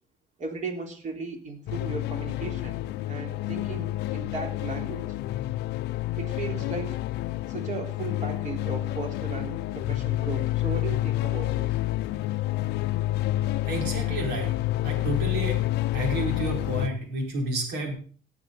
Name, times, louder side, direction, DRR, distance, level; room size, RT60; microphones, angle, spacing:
voice 1, 0.4-2.8 3.1-5.1 6.2-7.0 7.5-11.7, right 4 dB, 45° right, 3 dB, 3.5 m, -36 dB
sound 1, 1.7-16.9, left 15 dB, 90° left, 0.7 m, -29 dB
voice 2, 13.6-14.5 14.8-15.6 15.9-17.9, right 1 dB, 85° right, 1 dB, 5.1 m, -30 dB
18.0 x 7.1 x 5.4 m, 0.41 s
cardioid pair, 110°, 17 cm